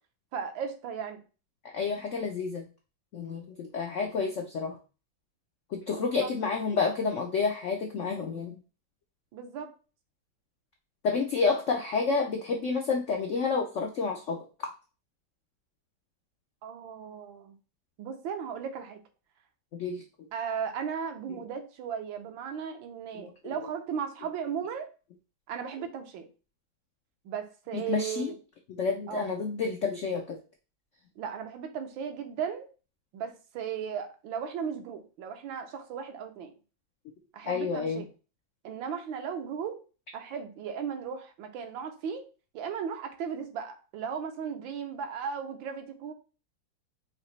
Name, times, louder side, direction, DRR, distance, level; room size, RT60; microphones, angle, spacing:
voice 1, 0.3-1.2 6.0-6.3 9.3-9.7 16.6-17.6 18.0-19.0 20.3-24.9 25.5-26.3 27.2-28.3 29.1-29.4 31.2-32.7 33.1-36.5 37.3-38.0 38.6-39.8 40.1-42.2 42.5-46.1, right 7 dB, 85° right, 6 dB, 1.5 m, -36 dB
voice 2, 1.7-2.7 3.1-4.8 5.7-8.6 11.0-14.7 19.7-20.0 21.3-21.4 23.1-23.2 27.7-28.3 28.8-30.4 37.5-38.0, left 4 dB, 85° left, 2 dB, 0.6 m, -29 dB
5.4 x 2.8 x 3.1 m, 0.34 s
omnidirectional pair, 2.1 m